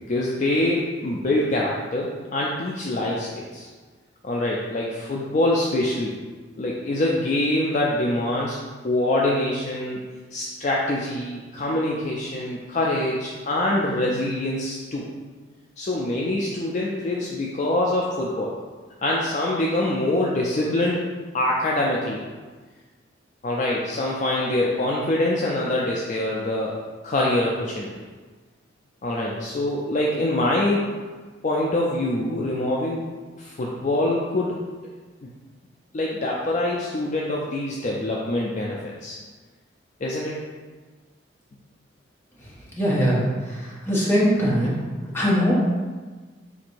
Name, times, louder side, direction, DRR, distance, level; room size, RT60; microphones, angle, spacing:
voice 1, 0.1-3.7 4.2-6.1 6.6-10.0 10.3-15.0 15.8-18.5 19.0-21.1 21.3-22.2 23.4-26.8 27.0-27.9 29.0-30.8 31.4-33.0 33.4-34.6 35.2-35.3 35.9-39.2 40.0-40.4, left 1 dB, 40° left, -3 dB, 0.4 m, -24 dB
voice 2, 42.7-44.8 45.1-45.6, equal, 10° left, -7 dB, 0.9 m, -21 dB
3.9 x 2.5 x 4.4 m, 1.4 s
head